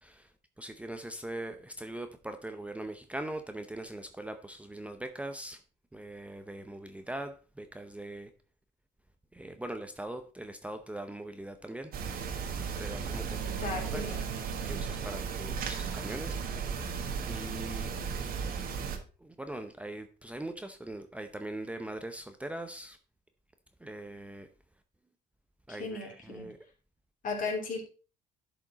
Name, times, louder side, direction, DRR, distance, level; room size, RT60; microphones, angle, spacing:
voice 1, 0.6-5.6 5.9-8.3 9.3-11.9 12.8-13.5 13.9-14.0 14.6-16.4 17.3-17.9 19.2-23.0 23.8-24.5 25.7-26.6, right 1 dB, 10° right, 7 dB, 0.6 m, -41 dB
sound 1, 11.9-19.0, right 6 dB, 60° right, 1.5 m, -35 dB
sound 2, 13.2-15.8, right 10 dB, 85° right, 1.4 m, -44 dB
voice 2, 13.6-14.3 25.7-26.4 27.2-27.8, left 3 dB, 50° left, 1 dB, 3.0 m, -35 dB
11.5 x 5.0 x 4.0 m, 0.36 s
cardioid pair, 110°, 17 cm